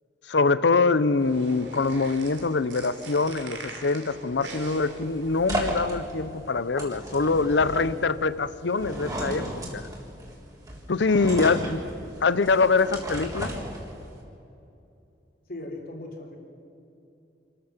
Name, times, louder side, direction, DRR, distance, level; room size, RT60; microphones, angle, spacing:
voice 1, 0.3-9.9 10.9-11.8 12.2-13.5, left 4 dB, 75° left, 16 dB, 0.7 m, -24 dB
sound 1, 1.0-6.0, right 3 dB, 80° right, 3.3 m, -43 dB
sound 2, 4.3-14.2, right 1 dB, 20° right, 3.6 m, -35 dB
voice 2, 11.3-11.7 12.7-13.2 15.5-16.4, left 1 dB, 55° left, 1 dB, 3.8 m, -39 dB
27.0 x 13.5 x 7.3 m, 2.7 s
head